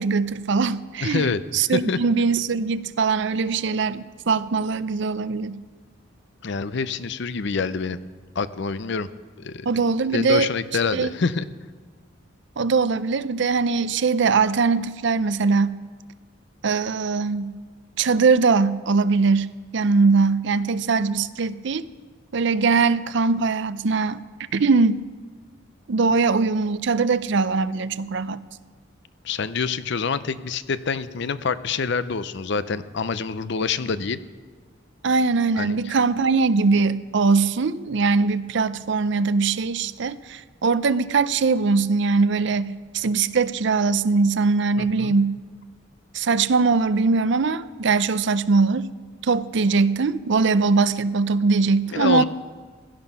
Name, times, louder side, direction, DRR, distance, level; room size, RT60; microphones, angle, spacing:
voice 1, 0.0-5.6 9.7-10.5 10.9-11.1 12.6-15.8 16.6-17.5 18.0-21.9 22.3-24.2 24.5-25.1 25.9-28.4 35.0-45.4 46.1-48.9 49.2-52.2, right 4 dB, 60° right, 0.5 m, -21 dB
voice 2, 1.0-1.4 1.7-2.0 6.4-8.0 8.4-9.1 9.4-9.7 10.1-11.5 29.2-34.2 35.6-36.0 44.8-45.1 51.9-52.2, left 5 dB, 60° left, 0.6 m, -26 dB
16.5 x 13.0 x 5.6 m
head